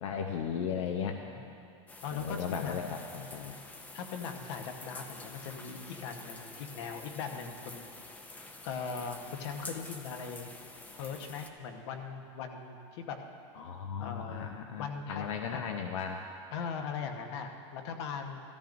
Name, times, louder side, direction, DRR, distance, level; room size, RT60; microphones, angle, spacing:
voice 1, 0.0-1.2 2.1-3.6 13.6-16.2, left 7 dB, 85° left, 4 dB, 0.8 m, -36 dB
sound 1, 1.9-11.5, left 2 dB, 10° left, 0.5 m, -48 dB
voice 2, 2.0-3.0 3.9-7.9 8.6-10.5 11.0-13.2 14.0-15.7 16.5-18.4, left 6 dB, 60° left, 4 dB, 1.1 m, -40 dB
16.0 x 14.0 x 2.6 m, 2.4 s
supercardioid pair, 170°, 16 cm